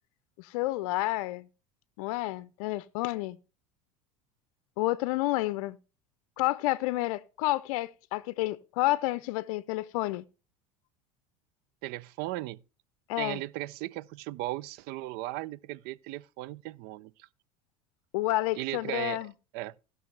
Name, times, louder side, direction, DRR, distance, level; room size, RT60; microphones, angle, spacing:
voice 1, 0.4-1.5 2.0-3.4 4.8-5.8 6.4-10.2 13.1-13.4 18.1-19.3, left 18 dB, 70° left, 0.5 m, -30 dB
voice 2, 11.8-12.6 13.2-17.3 18.6-19.2 19.5-19.7, right 17 dB, 60° right, 0.5 m, -37 dB
17.0 x 6.1 x 3.3 m
hypercardioid pair, 85°, 18 cm